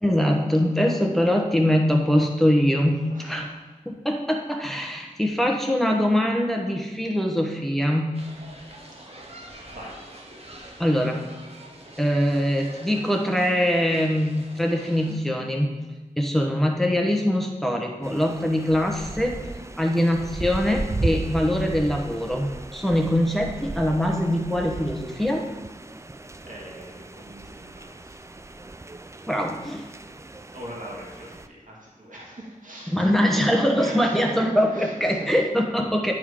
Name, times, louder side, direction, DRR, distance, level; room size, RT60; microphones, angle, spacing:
voice 1, 0.0-3.5 3.9-8.2 10.8-11.2 12.0-15.7 16.2-19.4 19.8-25.5 29.3-29.9 32.9-36.1, equal, ahead, 1 dB, 1.0 m, -23 dB
voice 2, 3.1-3.8 5.0-5.2 9.0-9.2 9.7-10.4 26.4-28.2 30.5-33.4 33.8-35.3, equal, 65° right, -4 dB, 1.8 m, -41 dB
sound 1, 8.1-15.1, right 1 dB, 45° right, 1.2 m, -45 dB
sound 2, 18.0-31.5, right 2 dB, 20° right, 0.3 m, -36 dB
9.8 x 3.7 x 4.9 m, 1.2 s
wide cardioid pair, 55°, 14 cm